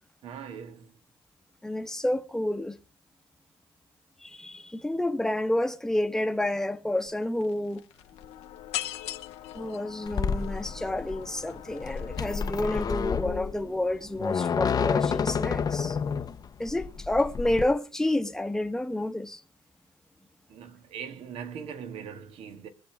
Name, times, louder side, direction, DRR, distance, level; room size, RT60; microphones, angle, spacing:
voice 1, 0.2-1.0 20.5-22.7, right 7 dB, 70° right, 1.8 m, -41 dB
voice 2, 1.6-2.8 4.2-7.8 9.5-16.0 16.6-19.4, left 1 dB, 5° left, 1.1 m, -29 dB
sound 1, 7.0-7.1 7.4-13.0, left 13 dB, 80° left, 1.1 m, -40 dB
sound 2, 10.1-17.6, left 6 dB, 40° left, 0.9 m, -29 dB
22.5 x 7.6 x 3.5 m
cardioid pair, 95°, 10 cm